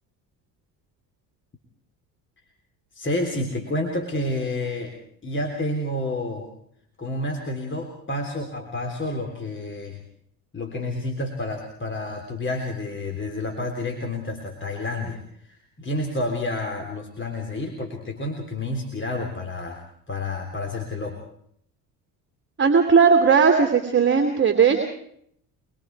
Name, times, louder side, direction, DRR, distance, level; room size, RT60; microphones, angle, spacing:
voice 1, 2.9-4.9 5.2-6.5 7.0-10.0 10.5-19.8 20.1-21.2, left 1 dB, 30° left, 3 dB, 3.5 m, -29 dB
voice 2, 22.6-24.8, right 6 dB, 30° right, 4 dB, 2.8 m, -17 dB
25.0 x 23.0 x 4.7 m, 0.68 s
supercardioid pair, 85°, 40 cm